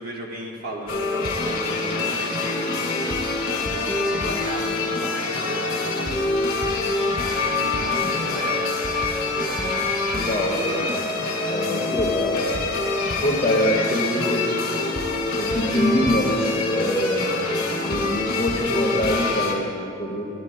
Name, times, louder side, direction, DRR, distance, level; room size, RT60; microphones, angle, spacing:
voice 1, 0.0-2.7 3.5-8.8, equal, 45° right, -2 dB, 1.4 m, -35 dB
sound 1, 0.9-19.5, left 3 dB, 70° left, 2.2 m, -25 dB
voice 2, 9.8-10.8 11.1-12.6 13.2-14.4 15.4-17.3 17.9-20.3, equal, 30° left, -3 dB, 1.6 m, -25 dB
14.0 x 11.5 x 2.2 m, 2.7 s
head